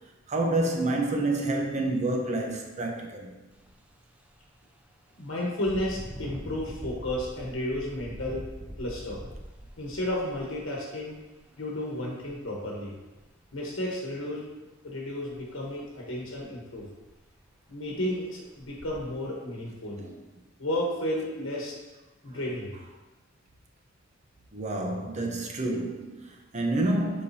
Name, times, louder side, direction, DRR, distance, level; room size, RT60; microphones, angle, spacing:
voice 1, 0.3-3.3 20.0-20.1 24.5-27.2, right 2 dB, 35° right, 0.9 m, -28 dB
Engine, 3.5-3.7 4.2-4.3 5.6-11.4 12.2-12.3 12.8-13.5 15.3-15.4 15.8-15.9 16.4-16.5 16.8-17.3 17.9-18.0 18.6-19.0, equal, 5° right, 0.4 m, -43 dB
voice 2, 5.2-8.4 8.8-9.2 9.8-11.1 11.6-12.9 13.5-14.4 14.8-16.9 17.7-20.0 20.6-21.8 22.2-22.7, left 1 dB, 90° left, 1.2 m, -32 dB
7.2 x 5.0 x 2.8 m
head